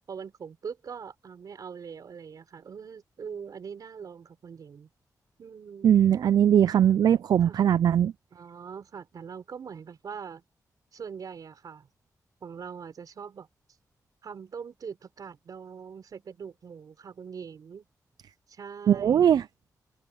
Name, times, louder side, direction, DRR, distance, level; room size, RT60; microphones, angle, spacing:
voice 1, 0.1-4.9 5.4-5.9 7.4-7.6 8.3-10.4 10.9-11.9 12.4-13.5 14.2-17.8 18.5-19.3, right 6 dB, 65° right, 4.7 m, -42 dB
voice 2, 5.8-8.1 18.9-19.4, right 9 dB, 80° right, 0.4 m, -20 dB
open air
wide cardioid pair, 140°, 7 cm